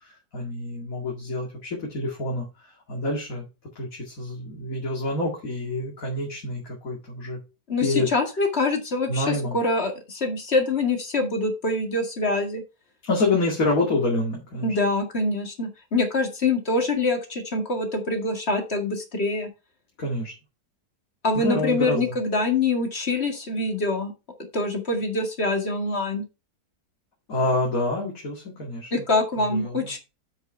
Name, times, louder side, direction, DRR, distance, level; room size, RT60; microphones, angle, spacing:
voice 1, 0.0-2.5 2.9-3.5 3.8-7.4 7.8-8.1 9.1-9.6 13.0-14.8 20.0-20.3 21.3-22.1 27.3-29.0 29.5-29.9, left 2 dB, 60° left, -1 dB, 2.7 m, -27 dB
voice 2, 7.7-12.6 14.6-19.5 21.2-24.1 24.5-26.2 28.9-30.0, left 2 dB, 40° left, 4 dB, 2.2 m, -25 dB
8.0 x 6.9 x 4.4 m, 0.29 s
omnidirectional pair, 1.7 m